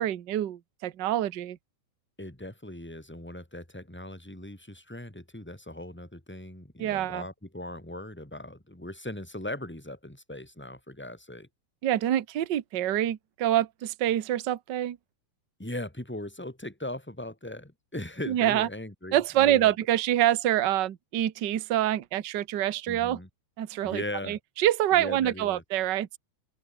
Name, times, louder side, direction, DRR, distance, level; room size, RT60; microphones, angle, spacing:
voice 1, 0.0-1.6 6.8-7.2 11.8-15.0 18.3-18.7 19.1-23.2 23.6-26.2, right 12 dB, 65° right, 1.1 m, -26 dB
voice 2, 2.2-11.5 15.6-19.7 22.9-23.3 23.8-24.4 24.9-25.6, left 1 dB, 5° left, 4.2 m, -39 dB
open air
omnidirectional pair, 3.6 m